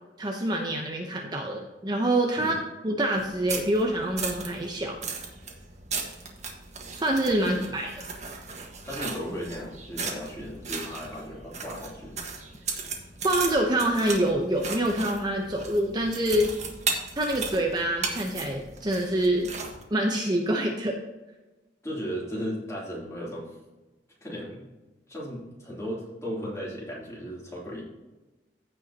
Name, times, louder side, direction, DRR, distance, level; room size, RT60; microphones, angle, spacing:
voice 1, 0.2-2.6 2.8-5.0 6.9-7.9 13.2-16.5 17.2-19.5 19.9-21.0, right 1 dB, 25° right, 1 dB, 0.8 m, -26 dB
sound 1, 3.2-19.8, right 4 dB, 40° right, 1.5 m, -36 dB
voice 2, 8.8-12.2 21.8-23.6 24.2-24.7 25.1-27.8, equal, 15° left, -5 dB, 3.0 m, -36 dB
15.5 x 5.5 x 2.9 m, 1.1 s
head